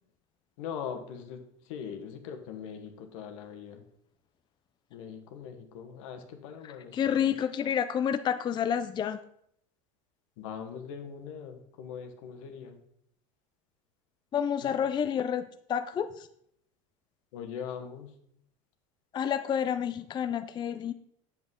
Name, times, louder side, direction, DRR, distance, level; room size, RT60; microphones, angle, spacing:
voice 1, 0.6-3.8 4.9-7.3 10.4-12.8 14.6-14.8 17.3-18.1, left 7 dB, 75° left, 6 dB, 1.4 m, -41 dB
voice 2, 6.6-9.2 14.3-16.3 19.1-20.9, left 8 dB, 25° left, 10 dB, 0.4 m, -29 dB
8.3 x 7.4 x 3.7 m, 0.70 s
supercardioid pair, 110°, 17 cm